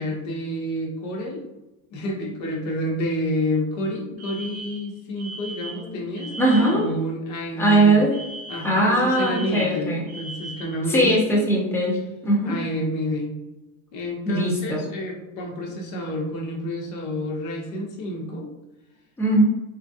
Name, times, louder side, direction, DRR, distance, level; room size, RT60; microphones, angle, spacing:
voice 1, 0.0-1.4 1.9-8.0 8.5-11.5 12.4-13.3 13.9-18.5, left 1 dB, 40° left, 0 dB, 0.9 m, -29 dB
Alarm, 4.2-6.9 8.1-10.8, right 2 dB, 35° right, 0.7 m, -39 dB
voice 2, 6.4-6.9 7.6-8.1 8.6-10.1 10.9-12.6 14.3-14.8 19.2-19.4, right 1 dB, 5° left, -3 dB, 0.6 m, -20 dB
3.1 x 2.4 x 2.6 m, 1.0 s
supercardioid pair, 120°, 44 cm